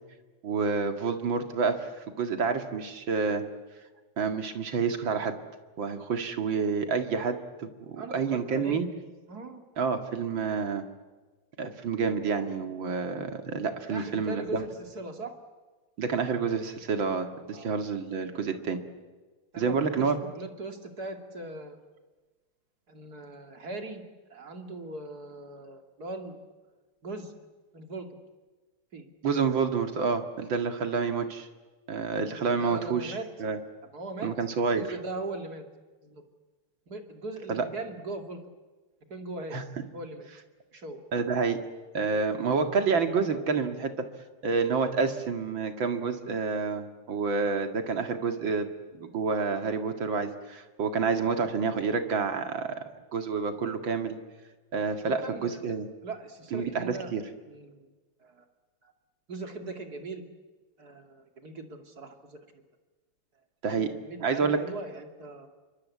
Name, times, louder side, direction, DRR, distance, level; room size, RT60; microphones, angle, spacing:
voice 1, 0.4-1.9 2.2-3.4 4.2-5.3 5.8-8.9 9.8-10.8 11.6-14.6 16.0-18.8 19.6-20.2 29.2-31.5 31.9-33.6 34.2-34.9 37.5-37.6 39.5-39.6 41.1-41.6 41.9-43.9 44.4-48.7 49.0-52.8 53.1-54.2 54.7-55.9 56.5-57.2 63.6-63.9 64.2-64.6, right 5 dB, 60° right, 7 dB, 2.7 m, -28 dB
voice 2, 8.0-8.8 9.3-9.6 13.9-15.3 17.5-17.7 18.3-18.4 19.5-21.8 22.9-24.0 24.3-26.4 27.0-27.3 27.7-28.1 28.9-29.0 32.6-33.3 33.9-34.3 34.8-35.6 36.0-36.2 36.9-38.4 39.1-39.6 39.9-40.3 40.7-41.0 55.0-55.6 56.0-57.1 57.4-57.9 58.2-58.4 58.8-58.9 59.3-60.2 60.8-62.4 64.0-65.5, right 2 dB, 45° right, 5 dB, 2.9 m, -39 dB
28.0 x 24.0 x 8.5 m, 1.3 s
omnidirectional pair, 2.4 m